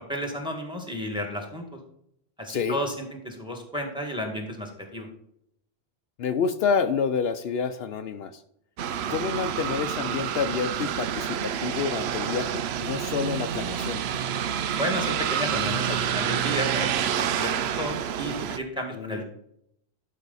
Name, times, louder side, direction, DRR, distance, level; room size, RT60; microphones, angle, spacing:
voice 1, 0.1-1.6 2.4-5.1 14.8-19.2, equal, 5° right, 3 dB, 1.9 m, -32 dB
voice 2, 2.5-2.8 6.2-8.4 9.1-14.0 18.9-19.2, left 6 dB, 70° left, 9 dB, 0.8 m, -28 dB
sound 1, 8.8-18.6, right 9 dB, 80° right, 0.9 m, -28 dB
11.5 x 5.5 x 4.1 m, 0.74 s
omnidirectional pair, 1.1 m